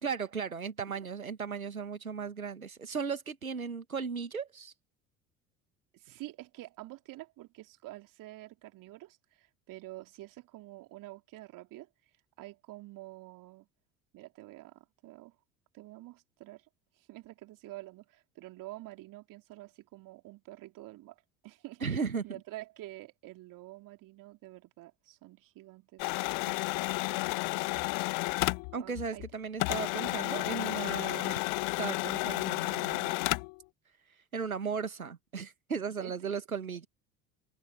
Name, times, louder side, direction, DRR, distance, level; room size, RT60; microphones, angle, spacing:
voice 1, 0.0-4.7 21.8-22.4 28.7-31.4 31.8-33.3 34.1-36.9, right 5 dB, 90° right, 1.4 m, -36 dB
voice 2, 5.9-11.9 12.4-13.7 14.1-15.4 15.7-16.7 17.0-26.1 26.4-26.6 26.9-28.0 28.7-29.2 36.0-36.4, right 18 dB, 50° right, 3.2 m, -48 dB
sound 1, 26.0-29.3 29.6-33.6, left 34 dB, 50° left, 0.5 m, -32 dB
figure-of-eight pair, 65°, 41 cm